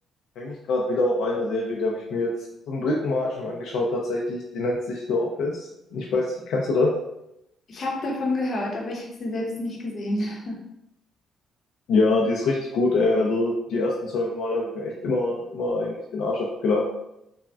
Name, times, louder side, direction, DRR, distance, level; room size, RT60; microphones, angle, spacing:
voice 1, 0.4-2.3 2.7-6.9 11.9-16.8, left 2 dB, 80° left, -2 dB, 0.4 m, -25 dB
voice 2, 7.7-10.6, left 1 dB, 50° left, -1 dB, 0.7 m, -29 dB
3.4 x 2.1 x 2.3 m, 0.82 s
cardioid pair, 90°, 0 cm